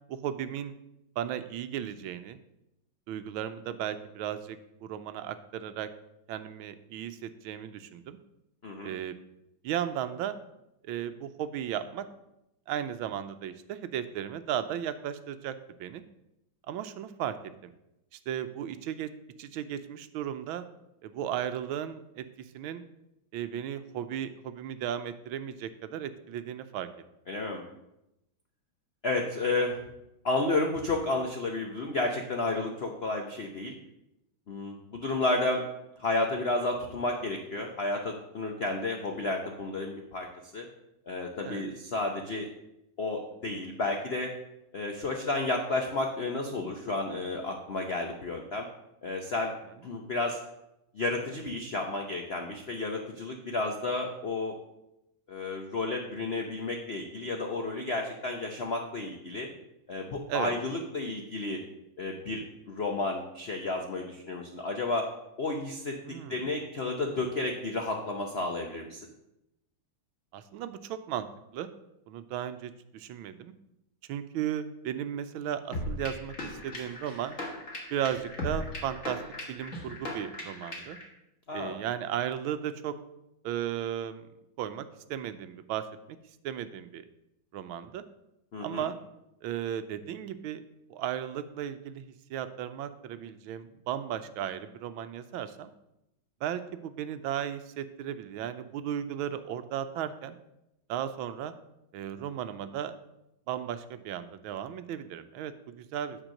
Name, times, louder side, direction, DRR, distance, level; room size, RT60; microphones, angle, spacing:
voice 1, 0.1-0.7 1.2-2.4 3.1-5.9 6.3-8.2 8.8-9.1 9.6-10.4 10.8-12.1 12.7-16.0 16.7-17.4 17.6-17.7 18.1-19.1 19.4-20.6 21.0-22.8 23.3-26.9 41.4-41.6 60.3-60.5 66.0-66.5 70.3-71.7 72.1-73.5 74.1-77.4 77.9-79.2 79.5-81.0 81.5-83.0 83.4-84.3 84.6-86.2 86.4-87.0 87.5-88.0 88.6-89.0 89.4-90.6 90.9-95.7 96.4-100.4 100.9-101.5 101.9-102.9 103.5-106.2, right 10 dB, 90° right, 11 dB, 1.4 m, -35 dB
voice 2, 8.6-8.9 27.3-27.6 29.0-29.8 30.2-33.7 34.5-35.6 36.0-40.3 40.5-40.7 41.1-42.5 43.0-44.3 44.7-48.7 49.0-49.5 49.8-50.4 50.9-54.5 55.3-59.5 59.9-61.6 62.0-65.1 65.4-65.9 66.3-69.0 81.5-81.8 88.5-88.8, left 2 dB, 70° left, 2 dB, 0.6 m, -31 dB
sound 1, 75.7-81.0, left 1 dB, 40° left, 2.1 m, -37 dB
9.0 x 4.5 x 6.4 m, 0.86 s
omnidirectional pair, 2.2 m